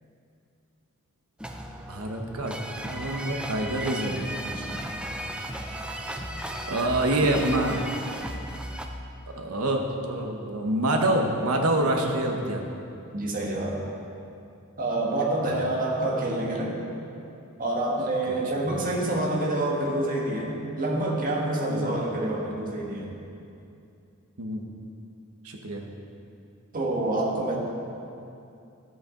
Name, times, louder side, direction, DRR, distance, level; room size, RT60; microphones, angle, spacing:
sound 1, 1.4-8.8, right 1 dB, 5° right, 0.5 m, -35 dB
voice 1, 1.9-4.2 6.7-7.8 9.3-12.7 18.3-18.8 21.7-21.9 24.4-24.7 25.4-25.8, right 1 dB, 80° right, 2 dB, 1.1 m, -26 dB
voice 2, 4.4-4.8 13.1-13.8 14.8-16.8 17.6-23.1 26.7-27.6, right 1 dB, 40° right, -2 dB, 1.5 m, -27 dB
12.0 x 8.1 x 3.8 m, 2.6 s
head